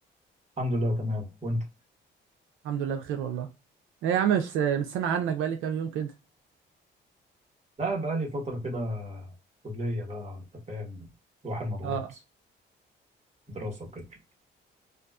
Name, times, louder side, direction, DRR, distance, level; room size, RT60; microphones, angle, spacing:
voice 1, 0.6-1.6 7.8-9.3 9.6-11.1 11.4-12.0 13.5-14.0, equal, 35° right, 1.3 m, -32 dB
voice 2, 2.6-3.5 4.0-6.1 11.8-12.1, right 8 dB, 85° right, 0.4 m, -28 dB
2.5 x 2.3 x 2.3 m
cardioid pair, 90°, 20 cm